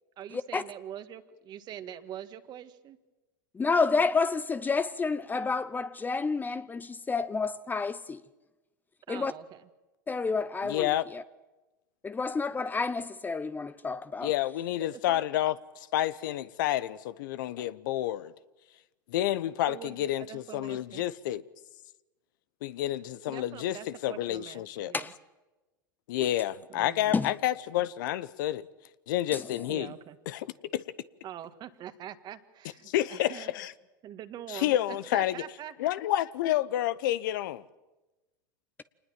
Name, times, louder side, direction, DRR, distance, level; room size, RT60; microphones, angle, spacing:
voice 1, 0.2-3.0 9.1-9.7 14.8-15.2 19.7-21.0 23.1-25.1 26.7-27.3 29.7-30.2 31.2-33.5 34.0-35.8, right 11 dB, 40° right, 1.8 m, -44 dB
voice 2, 3.6-8.2 9.1-9.3 10.1-11.2 12.0-14.3 24.9-25.1 27.1-27.3, left 4 dB, 15° left, 0.8 m, -29 dB
voice 3, 10.6-11.1 14.2-18.3 19.1-21.4 22.6-24.9 26.1-28.7 29.1-29.9 30.3-30.5 30.7-30.8 32.9-33.7 34.5-35.4 35.8-37.6, left 13 dB, 70° left, 0.9 m, -29 dB
26.0 x 20.0 x 7.6 m
hypercardioid pair, 100°, 11 cm